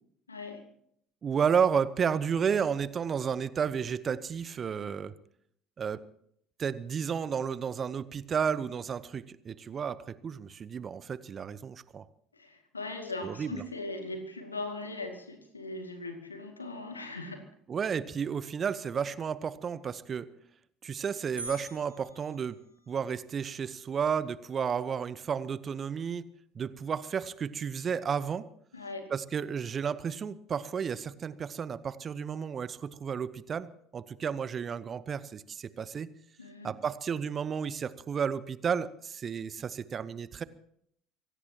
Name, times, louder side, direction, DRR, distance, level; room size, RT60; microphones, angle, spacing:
voice 1, 0.3-0.6 12.3-17.4 28.7-29.1 36.4-36.7, left 2 dB, 90° left, 5 dB, 2.3 m, -39 dB
voice 2, 1.2-5.1 5.8-6.0 6.6-12.0 13.2-13.6 17.7-20.3 20.8-22.6 22.9-26.3 26.5-28.5 29.1-36.1 36.6-40.4, right 7 dB, 35° right, 17 dB, 0.9 m, -32 dB
sound 1, 21.4-23.2, right 1 dB, 90° right, 5.3 m, -45 dB
25.5 x 17.5 x 3.0 m, 0.69 s
figure-of-eight pair, 60°, 0 cm